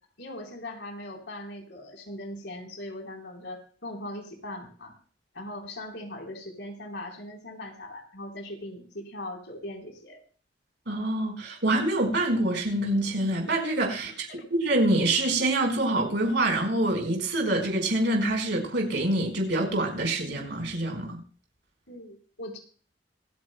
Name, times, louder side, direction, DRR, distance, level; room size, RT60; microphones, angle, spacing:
voice 1, 0.2-4.9 5.3-10.2 14.0-14.1 21.9-22.6, left 1 dB, 80° left, 2 dB, 4.0 m, -40 dB
voice 2, 10.9-21.2, right 1 dB, 70° right, 2 dB, 4.7 m, -26 dB
26.5 x 9.5 x 2.2 m, 0.42 s
head